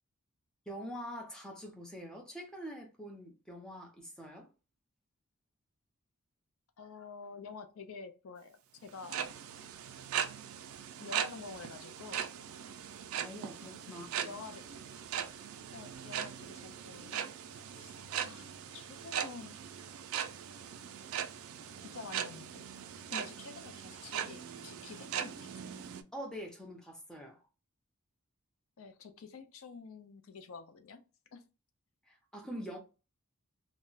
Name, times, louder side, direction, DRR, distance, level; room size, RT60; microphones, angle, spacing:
voice 1, 0.7-4.5 13.2-14.4 26.1-27.4 32.1-32.8, equal, 5° left, 0.5 m, -45 dB
voice 2, 6.8-8.6 8.8-9.3 11.0-12.3 13.9-14.7 15.7-17.3 17.8-19.6 21.9-22.6 23.1-25.8 28.8-31.0 31.3-31.4, left 5 dB, 70° left, 0.4 m, -49 dB
sound 1, 8.9-26.0, right 9 dB, 75° right, 0.3 m, -40 dB
2.2 x 2.0 x 3.8 m
head